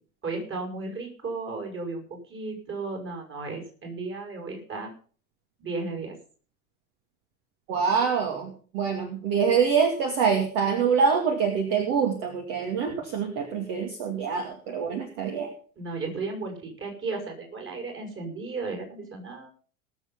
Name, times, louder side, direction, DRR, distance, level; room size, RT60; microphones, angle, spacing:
voice 1, 0.2-4.9 5.6-6.2 12.9-13.0 15.8-19.5, right 3 dB, 30° right, 3 dB, 5.4 m, -34 dB
voice 2, 7.7-15.5, right 6 dB, 50° right, 4 dB, 2.4 m, -25 dB
19.5 x 7.1 x 5.6 m, 0.43 s
figure-of-eight pair, 75°, 42 cm